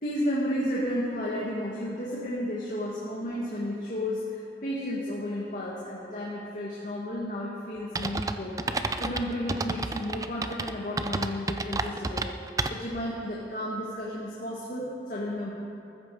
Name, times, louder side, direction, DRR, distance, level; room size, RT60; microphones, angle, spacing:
voice 1, 0.0-8.6 9.0-12.3 12.7-15.5, equal, 45° left, -6 dB, 2.0 m, -32 dB
sound 1, 8.0-13.0, right 3 dB, 20° right, 0.4 m, -31 dB
14.5 x 14.0 x 4.9 m, 2.9 s
head